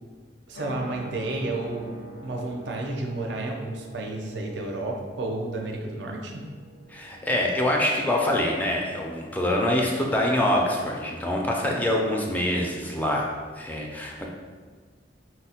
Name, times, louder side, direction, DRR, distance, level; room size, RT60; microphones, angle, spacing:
sound 1, 0.5-11.4, right 2 dB, 70° left, 0.5 m, -46 dB
voice 1, 0.5-6.5, right 2 dB, 70° right, 1 dB, 0.5 m, -31 dB
voice 2, 6.9-13.3 13.6-14.2, left 1 dB, 10° left, -1 dB, 0.3 m, -25 dB
4.1 x 2.0 x 2.7 m, 1.5 s
head